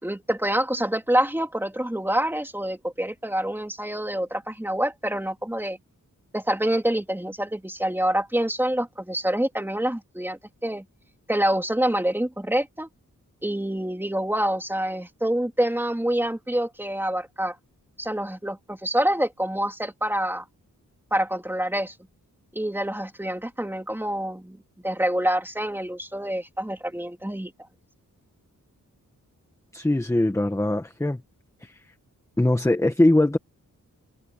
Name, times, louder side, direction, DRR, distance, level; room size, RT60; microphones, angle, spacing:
voice 1, 0.0-5.8 6.3-10.8 11.3-12.9 13.4-17.6 18.0-20.5 21.1-21.9 22.5-24.6 24.8-27.5, right 1 dB, 5° right, 3.6 m, -26 dB
voice 2, 29.7-31.2 31.6-31.8 32.4-33.4, left 1 dB, 10° left, 1.3 m, -21 dB
wide cardioid pair, 145°, 33 cm